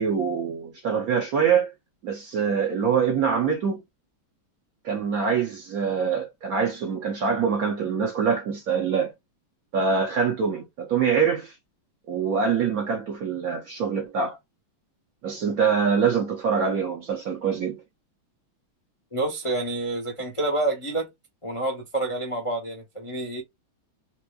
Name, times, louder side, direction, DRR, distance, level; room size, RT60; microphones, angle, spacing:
voice 1, 0.0-1.7 2.0-3.8 4.8-9.1 9.7-11.5 12.1-14.4 15.2-17.8, right 6 dB, 60° right, 1.0 m, -24 dB
voice 2, 19.1-21.1 21.4-23.4, right 2 dB, 35° left, 0.5 m, -28 dB
4.4 x 2.5 x 2.3 m
omnidirectional pair, 2.2 m